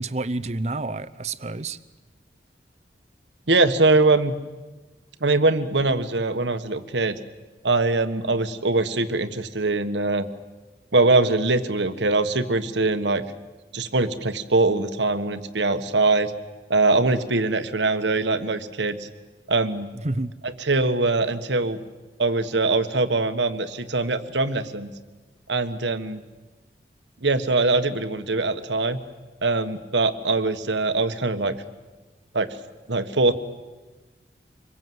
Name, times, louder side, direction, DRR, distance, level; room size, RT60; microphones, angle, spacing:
voice 1, 0.0-1.8 20.0-20.3, right 2 dB, 40° right, 12 dB, 0.8 m, -29 dB
voice 2, 3.5-4.3 5.2-7.2 7.6-10.3 10.9-13.2 13.7-16.3 16.7-19.1 19.5-19.9 20.4-21.8 22.2-24.9 25.5-26.2 27.2-29.0 29.4-31.5 32.3-32.6 32.9-33.3, right 3 dB, 85° right, 10 dB, 1.5 m, -22 dB
26.0 x 22.5 x 7.9 m, 1.2 s
head